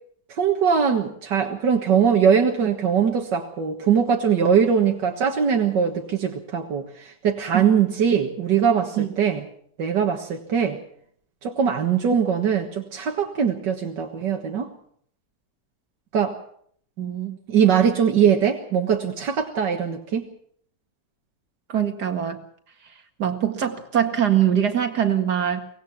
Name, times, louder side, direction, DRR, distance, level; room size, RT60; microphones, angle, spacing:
voice 1, 0.4-9.4 9.8-10.8 11.4-14.7 16.1-16.3 17.5-20.3, right 7 dB, 90° right, 2 dB, 2.2 m, -21 dB
voice 2, 17.0-17.4 21.7-22.4 23.2-25.7, right 9 dB, 70° right, 6 dB, 2.4 m, -23 dB
23.5 x 19.5 x 6.0 m, 0.63 s
omnidirectional pair, 1.8 m